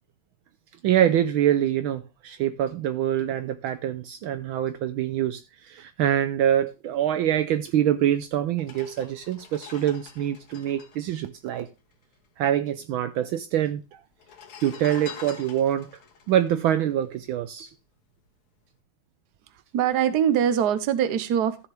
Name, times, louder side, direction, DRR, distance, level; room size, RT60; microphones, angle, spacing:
voice 1, 0.8-11.7 12.4-14.0 14.6-15.9 16.3-17.7, right 11 dB, 75° right, 1.4 m, -25 dB
sound 1, 7.9-8.0 8.5-12.2 12.5-12.6 12.7-13.4 14.1-17.6 18.1-18.3, left 7 dB, 90° left, 2.5 m, -45 dB
voice 2, 19.7-21.7, right 9 dB, 55° right, 1.4 m, -23 dB
14.0 x 7.1 x 3.3 m
omnidirectional pair, 2.4 m